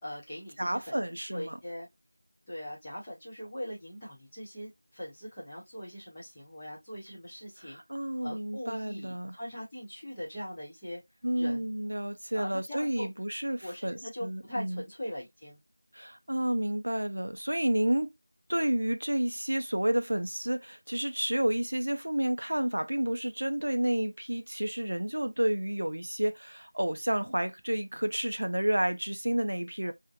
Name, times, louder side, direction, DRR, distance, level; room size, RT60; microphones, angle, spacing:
voice 1, 0.0-1.9 2.5-7.8 8.2-11.0 11.4-11.7 12.3-13.1 13.6-15.6 29.8-29.9, equal, 5° left, 0.6 m, -41 dB
voice 2, 0.6-1.6 7.6-9.4 11.2-14.8 15.9-18.1 18.5-29.9, right 1 dB, 55° right, 0.4 m, -30 dB
3.8 x 2.5 x 2.3 m
figure-of-eight pair, 180°, 0 cm